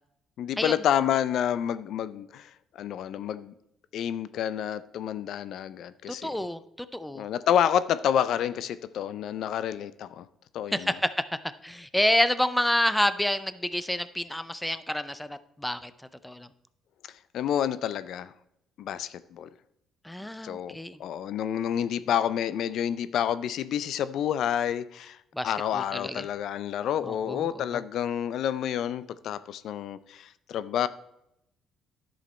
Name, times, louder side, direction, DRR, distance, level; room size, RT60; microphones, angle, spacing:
voice 1, 0.4-3.5 3.9-6.4 7.1-10.3 10.5-10.9 17.3-18.3 18.8-19.5 20.4-25.2 25.4-30.9, left 9 dB, 65° left, 15 dB, 0.4 m, -29 dB
voice 2, 6.1-7.3 10.7-11.1 11.6-15.9 16.2-16.5 20.0-21.0 25.3-26.2 27.1-27.8, left 1 dB, 5° left, 13 dB, 0.5 m, -28 dB
11.0 x 6.3 x 4.2 m, 0.82 s
cardioid pair, 110°, 0 cm